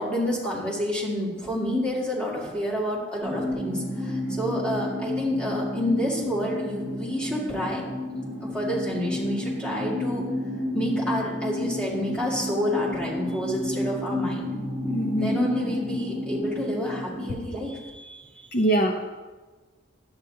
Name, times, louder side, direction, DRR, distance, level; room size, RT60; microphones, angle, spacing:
voice 1, 0.0-7.8 8.4-10.2 10.7-14.5 15.2-18.2, equal, 5° left, -7 dB, 2.2 m, -29 dB
sound 1, 3.2-17.3, left 1 dB, 15° right, 2.4 m, -31 dB
voice 2, 14.8-15.4 18.5-19.0, right 1 dB, 45° left, 0 dB, 0.7 m, -24 dB
11.0 x 8.9 x 2.8 m, 1.3 s
head